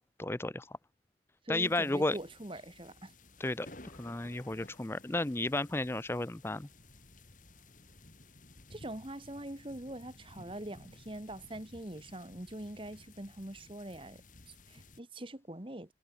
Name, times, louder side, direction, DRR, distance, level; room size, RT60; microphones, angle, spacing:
voice 1, 0.2-0.8 1.5-2.2 3.4-3.7 4.0-6.7, left 2 dB, 15° left, 0.5 m, -33 dB
voice 2, 1.4-3.1 8.7-15.9, right 1 dB, 30° right, 1.6 m, -43 dB
sound 1, 1.6-15.0, left 2 dB, 45° left, 4.1 m, -56 dB
head